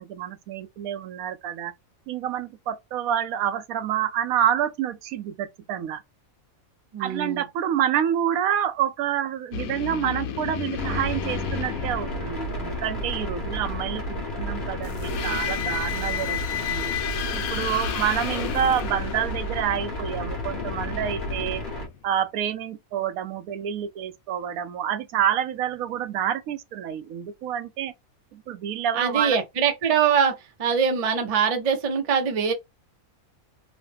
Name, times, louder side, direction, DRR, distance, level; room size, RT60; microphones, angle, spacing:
voice 1, 0.0-1.7 2.1-6.0 7.0-16.9 17.3-21.6 22.0-27.9 28.3-29.4, right 10 dB, 80° right, 1.0 m, -28 dB
voice 2, 6.9-7.4 29.0-32.5, right 7 dB, 45° right, 0.5 m, -23 dB
sound 1, 9.5-12.8 14.8-22.1, left 9 dB, 80° left, 1.1 m, -33 dB
sound 2, 10.8-21.9, left 1 dB, 40° left, 1.0 m, -32 dB
3.0 x 2.1 x 3.3 m
omnidirectional pair, 1.5 m